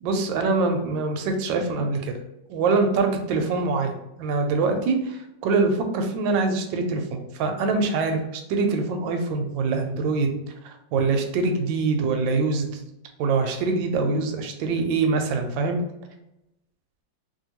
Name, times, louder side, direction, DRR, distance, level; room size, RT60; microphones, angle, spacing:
voice 1, 0.0-2.1 2.5-10.3 10.6-12.7 13.2-15.8, right 3 dB, 80° right, 4 dB, 1.2 m, -24 dB
2.8 x 2.7 x 2.8 m, 0.89 s
omnidirectional pair, 2.1 m